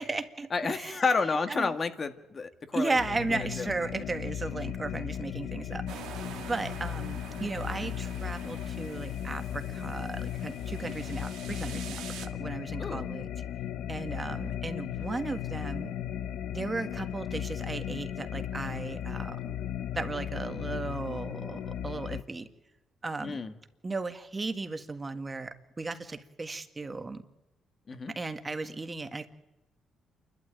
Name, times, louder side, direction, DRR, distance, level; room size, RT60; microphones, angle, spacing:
voice 1, 0.0-1.0 1.5-1.8 2.7-5.8 6.4-13.3 13.9-15.9 16.5-19.6 19.9-22.5 23.0-23.4 23.8-27.3 28.2-29.3, right 3 dB, 25° right, 8 dB, 1.8 m, -35 dB
voice 2, 0.5-3.0 3.3-3.7 7.8-8.0 12.8-13.0 23.2-23.5 27.9-28.1, left 4 dB, 40° left, 8 dB, 1.8 m, -30 dB
sound 1, 2.9-22.2, left 10 dB, 85° left, 0.9 m, -36 dB
sound 2, 5.9-12.3, right 9 dB, 85° right, 2.0 m, -46 dB
28.5 x 12.5 x 9.0 m, 1.0 s
cardioid pair, 90°, 0 cm